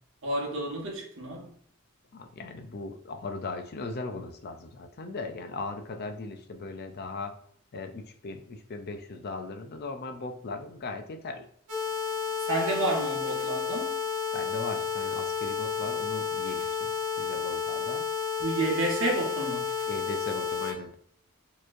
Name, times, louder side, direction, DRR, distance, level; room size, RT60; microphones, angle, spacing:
voice 1, 0.2-1.5 12.4-14.0 18.4-19.7, right 2 dB, 60° right, 1.2 m, -30 dB
voice 2, 2.1-7.4 7.7-11.5 14.3-18.1 19.9-20.9, left 3 dB, 45° left, 0.4 m, -38 dB
sound 1, 11.7-20.7, left 6 dB, 80° right, 1.1 m, -31 dB
4.3 x 3.1 x 2.5 m
head